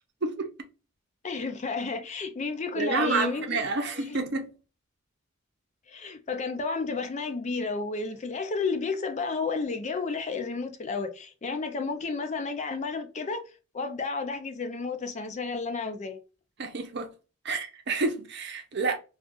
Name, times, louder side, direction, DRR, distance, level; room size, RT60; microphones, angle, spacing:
voice 1, 1.2-4.2 5.9-13.5 13.7-16.2, left 4 dB, 35° left, 0.4 m, -32 dB
voice 2, 2.8-4.5 16.6-17.1 17.4-19.0, right 4 dB, 55° right, 0.7 m, -29 dB
2.5 x 2.4 x 3.6 m
head